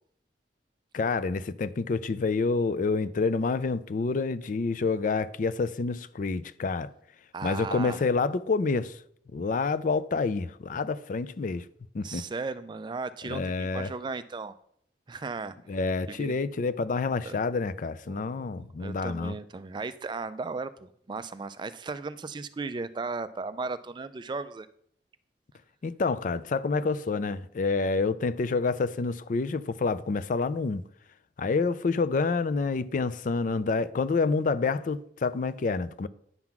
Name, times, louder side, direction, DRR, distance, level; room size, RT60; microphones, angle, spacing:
voice 1, 0.9-6.9 7.4-9.0 9.3-11.7 11.9-12.3 13.2-13.9 15.7-19.4 25.8-30.8 31.4-36.1, left 4 dB, 45° left, 0.4 m, -28 dB
voice 2, 7.3-8.0 12.0-14.5 15.1-15.8 16.1-16.3 17.3-17.4 18.1-24.7, right 4 dB, 25° right, 0.3 m, -36 dB
9.6 x 3.8 x 5.9 m
head